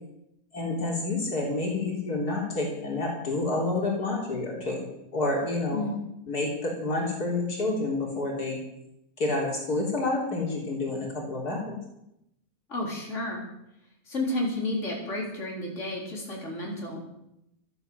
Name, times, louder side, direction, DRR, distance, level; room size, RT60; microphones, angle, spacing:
voice 1, 0.5-4.9 5.1-5.8 6.3-8.6 9.2-11.8, left 2 dB, 85° left, -2 dB, 4.2 m, -29 dB
voice 2, 12.7-13.4 14.1-17.0, left 1 dB, 50° left, -3 dB, 4.4 m, -31 dB
13.5 x 11.0 x 8.0 m, 0.83 s
omnidirectional pair, 1.6 m